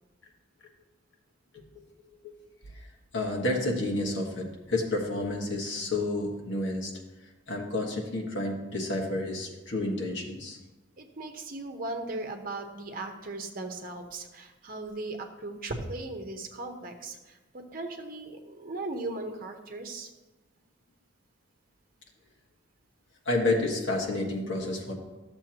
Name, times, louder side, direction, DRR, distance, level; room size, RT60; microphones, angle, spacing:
voice 1, 3.1-6.9 7.5-10.6 23.2-24.9, left 2 dB, 70° left, 0 dB, 1.5 m, -30 dB
voice 2, 11.0-20.1, right 2 dB, 45° right, 4 dB, 0.9 m, -38 dB
12.0 x 6.9 x 2.9 m, 1.1 s
head